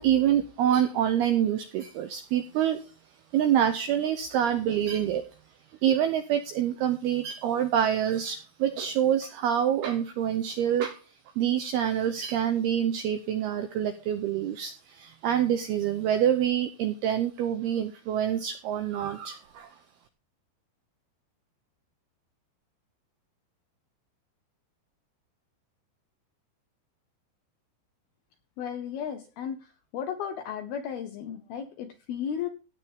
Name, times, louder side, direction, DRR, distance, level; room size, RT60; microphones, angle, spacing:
voice 1, 0.0-2.8 3.3-5.2 5.8-11.0 11.4-19.7, right 10 dB, 85° right, 8 dB, 2.2 m, -26 dB
voice 2, 28.6-29.6 29.9-32.5, left 8 dB, 80° left, 7 dB, 2.2 m, -34 dB
16.5 x 8.5 x 3.6 m, 0.34 s
omnidirectional pair, 5.5 m